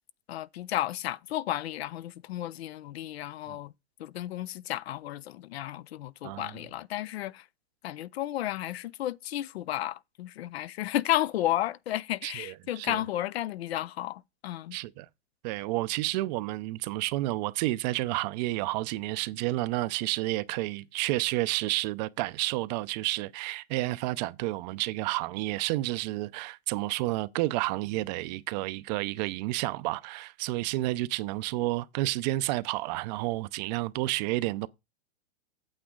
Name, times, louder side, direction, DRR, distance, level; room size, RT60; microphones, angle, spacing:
voice 1, 0.3-3.7 4.0-7.4 7.8-14.8, left 13 dB, 70° left, 0.6 m, -33 dB
voice 2, 6.2-6.6 12.2-13.0 14.7-15.1 15.4-34.7, right 18 dB, 45° right, 0.5 m, -30 dB
8.8 x 7.4 x 3.7 m
hypercardioid pair, 125°, 32 cm